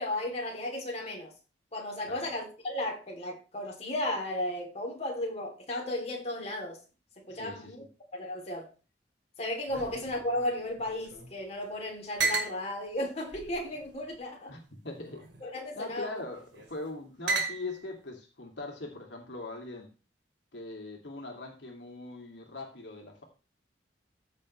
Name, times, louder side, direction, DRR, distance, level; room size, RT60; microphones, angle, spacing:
voice 1, 0.0-1.3 1.7-6.8 7.3-7.8 8.1-8.7 9.4-14.5 15.4-16.2, left 1 dB, 35° left, 3.1 m, -34 dB
voice 2, 7.3-7.9 14.5-15.2 15.7-19.9 20.5-23.2, left 2 dB, 85° left, 2.6 m, -41 dB
sound 1, 9.7-11.3 11.6-11.7 12.2-12.6 13.3-14.2 15.0-15.4 16.3-16.7 17.3-17.9, right 3 dB, 90° right, 2.5 m, -34 dB
14.5 x 6.6 x 3.3 m
head